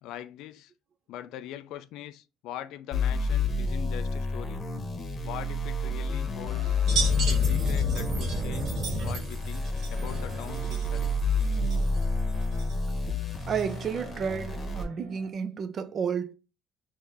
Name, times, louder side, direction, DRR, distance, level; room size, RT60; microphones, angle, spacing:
voice 1, 0.0-0.7 1.1-4.6 5.2-6.8 7.3-11.1, left 11 dB, 75° left, 0.3 m, -42 dB
sound 1, 2.9-14.8, left 4 dB, 30° left, 0.9 m, -29 dB
sound 2, 6.4-15.3, right 3 dB, 90° right, 0.9 m, -50 dB
sound 3, 6.8-13.9, right 2 dB, 60° right, 1.5 m, -33 dB
voice 2, 13.5-16.3, right 7 dB, 45° right, 0.5 m, -31 dB
3.8 x 2.7 x 3.3 m
cardioid pair, 120°, 0 cm